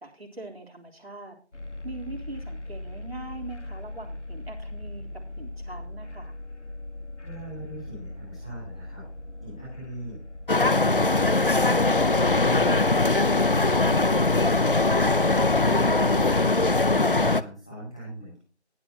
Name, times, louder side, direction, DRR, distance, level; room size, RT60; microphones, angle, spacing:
voice 1, 0.0-1.4 1.8-6.3, right 3 dB, 60° right, 2 dB, 3.6 m, -42 dB
sound 1, 1.5-16.5, left 1 dB, 90° left, 1.6 m, -39 dB
voice 2, 7.2-9.0 9.4-10.2 12.1-13.0 13.3-14.2 16.3-18.4, right 1 dB, 5° left, -9 dB, 2.1 m, -40 dB
sound 2, 10.5-17.4, left 2 dB, 50° left, 0.7 m, -21 dB
19.0 x 7.4 x 2.8 m, 0.36 s
figure-of-eight pair, 170°, 34 cm